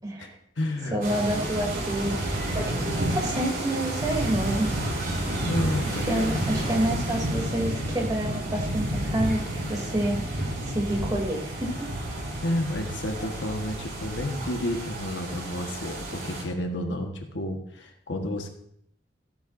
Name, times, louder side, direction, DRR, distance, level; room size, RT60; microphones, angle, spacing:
voice 1, 0.0-0.4 0.9-4.7 6.1-11.9, right 1 dB, 20° right, -1 dB, 2.9 m, -29 dB
voice 2, 0.6-1.0 2.5-2.9 5.4-6.5 12.4-18.5, left 1 dB, 75° left, 3 dB, 1.4 m, -31 dB
sound 1, 1.0-16.4, right 1 dB, 55° right, 5.3 m, -30 dB
15.0 x 12.0 x 2.6 m, 0.72 s
head